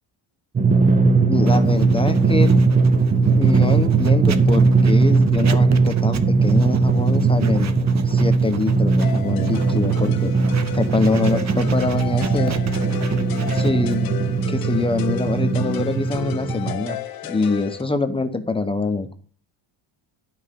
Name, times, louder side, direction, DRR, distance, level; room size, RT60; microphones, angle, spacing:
Drum, 0.6-16.7, right 4 dB, 15° right, 0.5 m, -19 dB
voice 1, 1.2-2.5 3.3-7.7 8.1-10.3 10.7-12.6 13.3-14.1 14.5-19.1, left 3 dB, 10° left, 8 dB, 0.8 m, -24 dB
Writing, 1.5-16.2, right 7 dB, 35° right, 0.9 m, -36 dB
sound 1, 9.0-17.8, left 12 dB, 45° left, 1.0 m, -34 dB
11.0 x 5.8 x 6.6 m, 0.43 s
cardioid pair, 150°, 49 cm